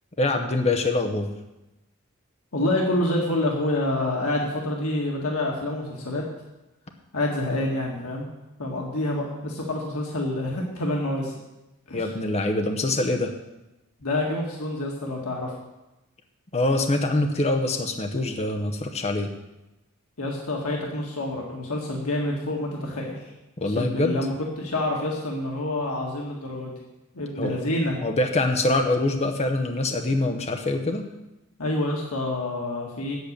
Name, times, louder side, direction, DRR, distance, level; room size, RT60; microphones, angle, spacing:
voice 1, 0.2-1.3 11.9-13.3 16.5-19.3 23.6-24.1 27.4-27.6 28.0-31.1, left 2 dB, 30° left, 4 dB, 0.8 m, -24 dB
voice 2, 2.5-6.2 7.1-8.2 8.6-11.3 11.9-12.1 14.0-15.5 20.2-23.2 23.7-26.7 27.1-28.0 31.6-33.2, left 1 dB, 90° left, -1 dB, 1.7 m, -27 dB
8.6 x 8.0 x 6.6 m, 0.97 s
head